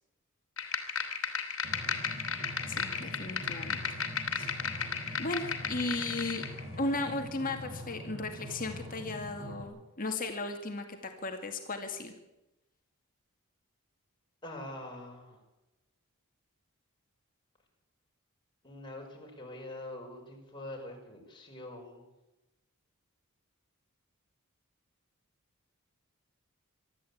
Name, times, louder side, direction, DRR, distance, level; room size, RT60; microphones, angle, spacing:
sound 1, 0.6-6.6, left 6 dB, 60° left, 2.8 m, -35 dB
sound 2, 1.6-9.6, equal, 40° right, 5.6 m, -44 dB
voice 1, 2.7-3.8 4.3-4.5 5.2-6.5 6.8-12.1, left 2 dB, 40° left, 4 dB, 2.2 m, -36 dB
voice 2, 14.4-15.4 18.6-22.0, left 1 dB, 20° left, 0 dB, 5.8 m, -44 dB
24.5 x 13.0 x 8.7 m, 0.99 s
head